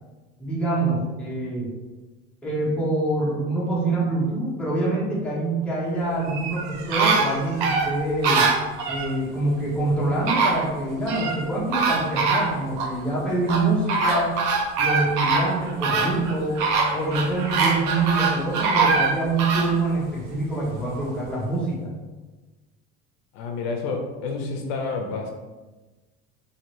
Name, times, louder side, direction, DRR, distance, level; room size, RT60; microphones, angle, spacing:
voice 1, 0.4-1.7 2.4-8.5 8.9-14.4 14.8-21.9, right 2 dB, 5° left, -7 dB, 0.8 m, -25 dB
sound 1, 6.2-9.1 9.9-10.0 10.3-11.4 11.7-12.9 13.5-19.7 20.2-20.3, right 4 dB, 60° right, 0.6 m, -23 dB
voice 2, 23.3-25.3, left 4 dB, 65° left, 3 dB, 0.5 m, -29 dB
2.8 x 2.6 x 3.0 m, 1.2 s
cardioid pair, 140°, 31 cm